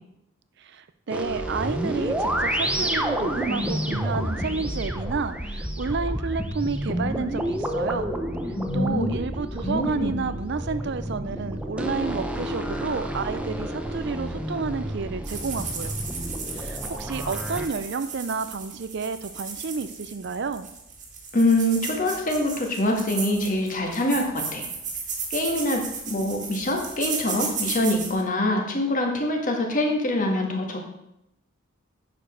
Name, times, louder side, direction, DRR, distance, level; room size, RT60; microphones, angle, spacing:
voice 1, 0.6-8.1 8.7-16.0 16.5-20.7, right 4 dB, 55° right, 11 dB, 0.5 m, -31 dB
sound 1, 1.1-17.7, equal, 5° right, 0.8 m, -29 dB
voice 2, 8.5-9.1 9.6-10.2 21.3-24.7 25.3-30.8, left 1 dB, 40° left, 2 dB, 1.8 m, -24 dB
sound 2, 15.2-28.2, right 5 dB, 35° right, 1.9 m, -35 dB
10.0 x 5.2 x 6.3 m, 0.81 s
head